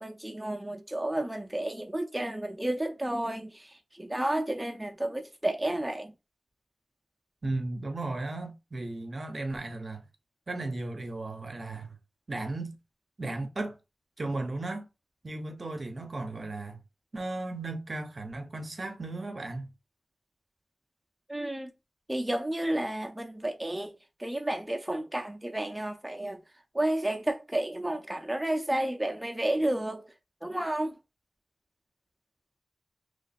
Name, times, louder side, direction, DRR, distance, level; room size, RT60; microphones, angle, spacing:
voice 1, 0.0-6.1 21.3-21.7 22.1-23.9 24.2-26.4 26.7-30.0 30.4-30.9, right 1 dB, 10° right, 0.6 m, -31 dB
voice 2, 7.4-10.0 10.5-12.0 12.3-12.7 13.2-13.8 14.2-14.9 15.2-16.8 17.1-19.7, right 2 dB, 45° right, 0.7 m, -35 dB
3.1 x 2.1 x 4.0 m
wide cardioid pair, 100°, 0 cm